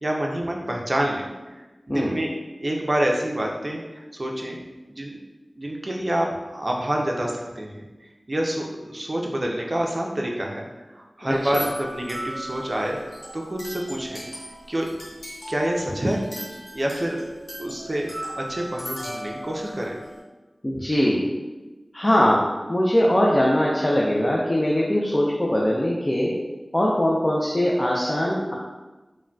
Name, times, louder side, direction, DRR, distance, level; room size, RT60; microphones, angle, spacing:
voice 1, 0.0-1.6 1.9-2.3 2.6-4.6 4.9-5.2 5.6-7.8 8.3-10.6 10.9-14.3 14.7-14.9 15.5-16.2 16.7-17.3 17.6-20.0, right 1 dB, 40° right, 0 dB, 0.4 m, -27 dB
sound 1, 11.3-20.2, equal, 70° left, 1.1 m, -37 dB
voice 2, 20.6-21.3 21.9-26.3 26.7-28.6, equal, 30° left, -3 dB, 0.4 m, -21 dB
3.7 x 2.1 x 2.2 m, 1.2 s
wide cardioid pair, 65°, 0 cm